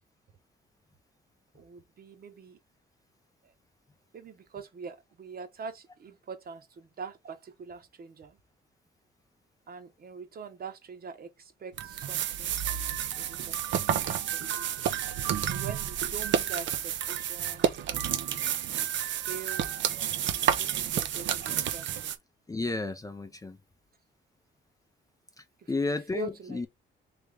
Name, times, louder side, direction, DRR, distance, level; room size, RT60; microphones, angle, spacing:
voice 1, 1.5-2.6 4.1-8.4 9.7-14.7 15.5-18.4 19.2-19.7 20.5-22.1 25.6-25.7 26.1-26.7, right 4 dB, 50° right, 1.1 m, -44 dB
sound 1, 11.8-22.2, right 10 dB, 70° right, 0.7 m, -30 dB
voice 2, 22.5-23.6 25.4-26.7, left 3 dB, 15° left, 0.6 m, -33 dB
3.4 x 3.1 x 3.4 m
cardioid pair, 90°, 20 cm